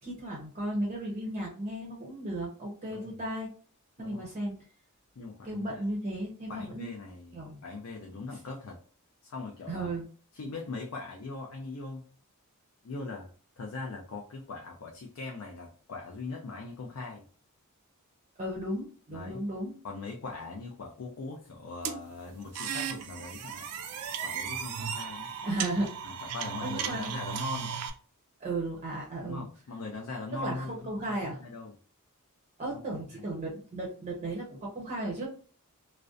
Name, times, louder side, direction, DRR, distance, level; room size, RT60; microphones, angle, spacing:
voice 1, 0.0-3.5 4.0-4.5 5.4-6.9 7.3-7.6 9.7-10.1 18.4-19.7 25.4-25.9 26.2-26.4 26.6-27.1 28.4-29.5 30.3-31.4 32.6-35.3, right 1 dB, 30° right, -3 dB, 0.5 m, -35 dB
voice 2, 5.2-5.8 6.5-7.4 7.6-8.8 9.2-9.9 10.3-12.0 12.8-13.3 13.6-17.3 19.1-19.4 19.8-23.7 24.2-25.3 26.0-27.7 29.2-30.8 31.4-31.7 33.1-33.3, left 3 dB, 65° left, 0 dB, 0.4 m, -40 dB
sound 1, 21.8-27.9, right 7 dB, 85° right, 0.4 m, -36 dB
2.4 x 2.1 x 2.4 m, 0.42 s
head